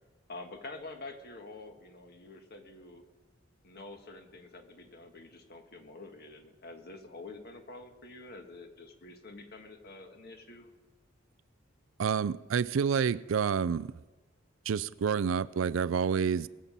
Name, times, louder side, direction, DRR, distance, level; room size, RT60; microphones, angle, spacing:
voice 1, 0.3-3.0 3.6-10.7, left 2 dB, 55° left, 1.6 m, -47 dB
voice 2, 12.0-13.9 14.7-16.5, right 6 dB, 85° right, 0.4 m, -28 dB
21.5 x 7.6 x 5.4 m
head